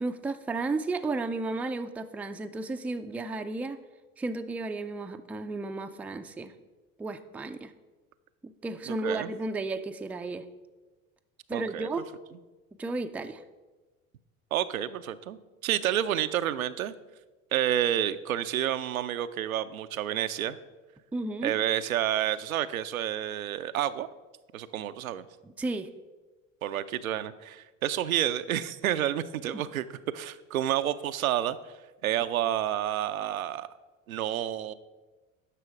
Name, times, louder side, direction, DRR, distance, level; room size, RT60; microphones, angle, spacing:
voice 1, 0.0-3.8 4.2-6.5 7.0-7.7 8.6-10.4 11.5-12.1 12.8-13.4 21.1-21.5 25.4-25.9 29.5-29.6, right 3 dB, 5° right, 7 dB, 0.3 m, -33 dB
voice 2, 8.9-9.3 11.5-11.9 14.5-16.9 17.5-20.6 21.4-24.1 24.5-25.3 26.6-29.9 30.1-31.7 32.0-33.7 34.1-34.7, right 11 dB, 85° right, 11 dB, 0.5 m, -29 dB
10.0 x 6.2 x 4.7 m, 1.2 s
figure-of-eight pair, 65°, 40 cm